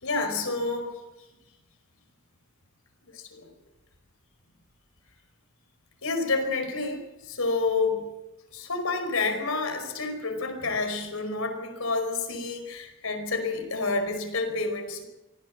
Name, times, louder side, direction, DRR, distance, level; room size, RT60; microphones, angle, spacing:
voice 1, 0.0-1.0 3.1-3.5 6.0-8.1 8.5-15.0, left 3 dB, 85° left, 6 dB, 5.1 m, -29 dB
24.5 x 16.5 x 7.7 m, 0.98 s
head